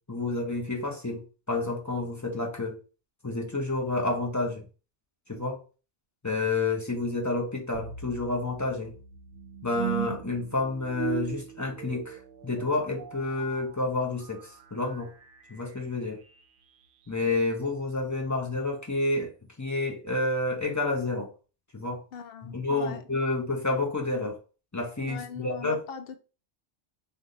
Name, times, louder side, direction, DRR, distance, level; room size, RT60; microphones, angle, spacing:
voice 1, 0.1-2.8 3.2-4.7 5.3-5.6 6.2-8.9 9.6-15.1 15.5-16.2 17.1-21.3 21.7-22.0 22.4-24.4 24.7-25.8, left 2 dB, 20° left, 0.7 m, -29 dB
sound 1, 7.7-16.8, right 10 dB, 60° right, 0.6 m, -39 dB
voice 2, 22.1-23.0 25.1-26.2, left 6 dB, 60° left, 0.7 m, -40 dB
3.6 x 2.7 x 3.8 m
omnidirectional pair, 1.2 m